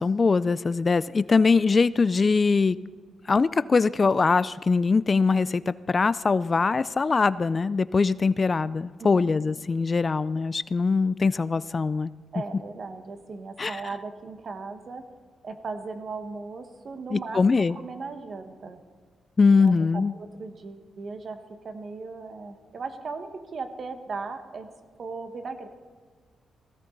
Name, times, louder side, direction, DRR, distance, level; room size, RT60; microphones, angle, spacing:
voice 1, 0.0-2.8 3.3-12.1 13.6-13.8 17.1-17.8 19.4-20.1, left 4 dB, 35° left, 17 dB, 0.3 m, -22 dB
voice 2, 9.0-9.5 12.3-15.0 15.4-18.8 19.5-24.7 25.0-25.7, right 4 dB, 50° right, 7 dB, 1.4 m, -37 dB
18.5 x 16.0 x 3.9 m, 1.5 s
cardioid pair, 95°, 0 cm